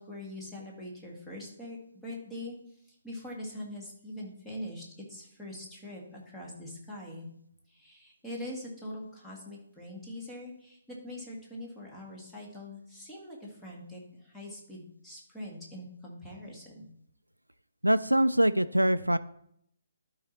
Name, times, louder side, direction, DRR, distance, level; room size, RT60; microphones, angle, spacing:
voice 1, 0.0-2.6 3.0-4.8 5.1-7.3 7.7-16.9, left 1 dB, 5° left, -3 dB, 2.0 m, -43 dB
voice 2, 17.8-19.2, right 1 dB, 85° right, 13 dB, 0.4 m, -23 dB
12.0 x 4.8 x 4.3 m, 0.72 s
figure-of-eight pair, 135°, 0 cm